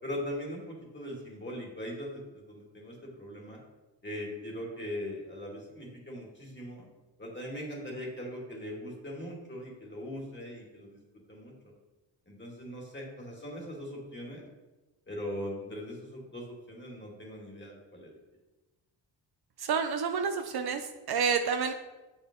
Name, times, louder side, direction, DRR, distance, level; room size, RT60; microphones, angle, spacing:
voice 1, 0.0-3.6 4.0-6.9 7.2-11.0 11.3-11.5 12.3-14.5 15.1-18.2, left 1 dB, 25° left, -2 dB, 2.4 m, -40 dB
voice 2, 19.6-21.7, right 6 dB, 55° right, 7 dB, 0.7 m, -29 dB
6.8 x 5.5 x 3.8 m, 1.1 s
cardioid pair, 75°, 45 cm